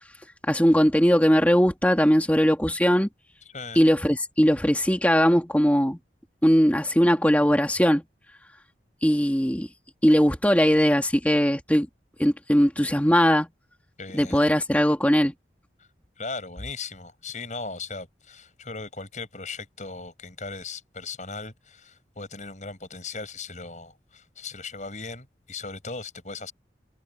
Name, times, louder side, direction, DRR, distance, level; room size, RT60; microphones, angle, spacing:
voice 1, 0.5-3.1 3.8-6.0 6.4-8.0 9.0-9.7 10.0-11.9 12.2-13.5 14.1-15.3, equal, 10° left, 2.3 m, -20 dB
voice 2, 14.0-14.4 16.2-26.5, left 4 dB, 45° left, 6.5 m, -38 dB
head